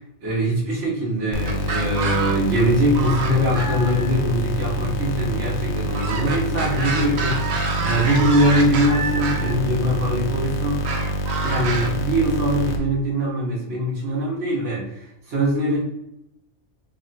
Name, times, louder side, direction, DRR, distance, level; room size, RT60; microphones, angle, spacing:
voice 1, 0.2-7.5 7.8-10.8 11.4-15.8, equal, 90° right, -5 dB, 1.6 m, -22 dB
sound 1, 1.3-12.8, equal, 80° left, 0.9 m, -26 dB
sound 2, 1.5-2.6 2.9-4.1 5.9-9.5 10.8-11.9, right 4 dB, 75° right, 0.9 m, -28 dB
3.7 x 3.1 x 2.6 m, 0.80 s
omnidirectional pair, 1.2 m